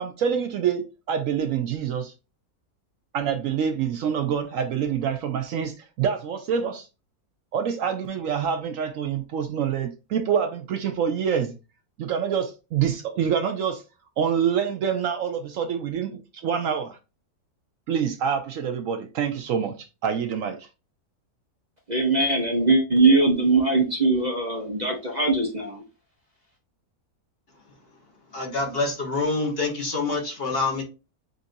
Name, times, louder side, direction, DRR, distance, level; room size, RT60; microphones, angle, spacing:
voice 1, 0.0-2.1 3.1-6.9 7.5-11.5 12.0-13.8 14.2-17.0 17.9-20.6, right 7 dB, 70° right, 0.9 m, -26 dB
voice 2, 21.9-25.8, right 3 dB, 35° right, 0.8 m, -21 dB
voice 3, 28.3-30.8, left 3 dB, 40° left, 1.2 m, -26 dB
7.8 x 2.6 x 2.6 m
omnidirectional pair, 1.6 m